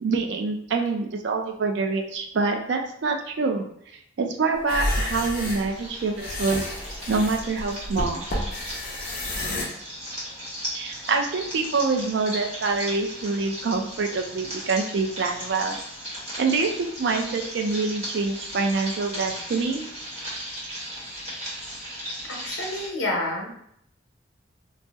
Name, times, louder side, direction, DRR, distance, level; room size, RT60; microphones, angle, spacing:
voice 1, 0.0-3.7 4.2-6.6 7.1-8.3 10.7-15.8 16.4-19.9, right 4 dB, 60° right, 4 dB, 0.4 m, -26 dB
sound 1, 4.6-9.6, left 1 dB, 45° left, 0.6 m, -30 dB
sound 2, 5.3-22.9, equal, 30° right, 0.9 m, -37 dB
voice 2, 22.3-23.5, left 2 dB, 70° left, -1 dB, 0.8 m, -29 dB
2.7 x 2.0 x 3.4 m, 0.71 s
head